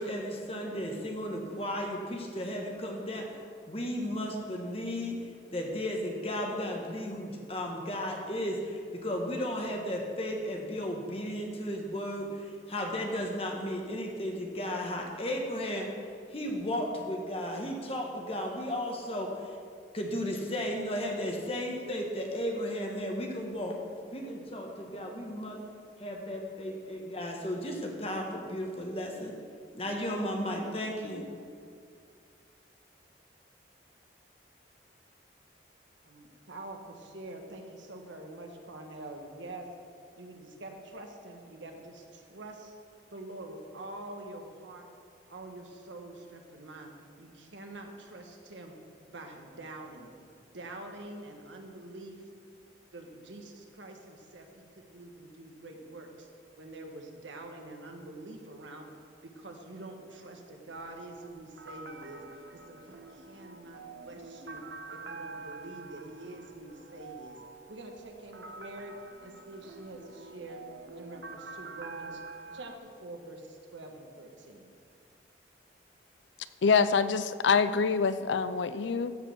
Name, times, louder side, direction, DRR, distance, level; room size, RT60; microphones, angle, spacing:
voice 1, 0.0-3.3 3.7-5.2 5.5-15.9 16.3-19.5 19.9-23.8 24.1-25.6 26.0-29.3 29.7-31.2, equal, 30° left, 1 dB, 1.4 m, -34 dB
voice 2, 36.0-39.7 40.2-42.7 43.1-44.9 45.3-46.9 47.2-48.7 49.1-50.1 50.4-52.4 52.9-54.5 54.9-56.3 56.6-58.9 59.2-62.2 62.5-64.6 64.9-67.4 67.7-68.9 69.2-70.6 70.9-72.2 72.5-74.7, right 2 dB, 85° right, 3 dB, 1.4 m, -46 dB
sound 1, 60.8-72.8, right 3 dB, 65° right, 0.6 m, -47 dB
voice 3, 76.6-79.1, left 5 dB, 80° left, 13 dB, 0.5 m, -25 dB
14.5 x 5.1 x 6.3 m, 2.3 s
head